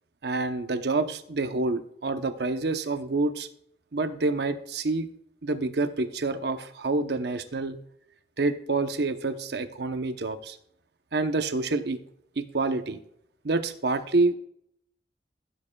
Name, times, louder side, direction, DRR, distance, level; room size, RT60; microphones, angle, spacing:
voice 1, 0.2-3.5 3.9-5.1 5.4-7.8 8.4-10.6 11.1-12.0 12.4-13.0 13.4-14.3, right 3 dB, 65° right, 9 dB, 0.8 m, -27 dB
15.0 x 7.5 x 2.3 m, 0.71 s
head